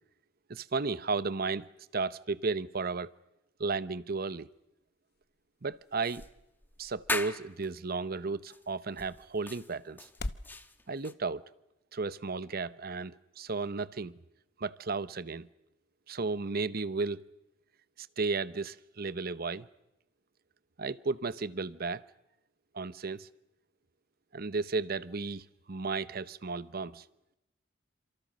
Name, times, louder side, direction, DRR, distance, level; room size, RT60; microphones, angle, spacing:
voice 1, 0.5-1.7 1.9-3.1 3.6-4.5 5.6-6.2 6.8-10.1 10.9-11.4 11.9-14.2 14.6-15.5 16.1-17.2 18.0-19.7 20.8-22.0 22.7-23.3 24.3-27.0, right 4 dB, 55° right, 0.9 m, -34 dB
sound 1, 4.3-10.6, left 2 dB, 55° left, 1.0 m, -47 dB
sound 2, 6.0-7.7 8.5-8.6 9.0-11.1, left 2 dB, 10° left, 1.1 m, -39 dB
28.0 x 27.0 x 6.3 m
head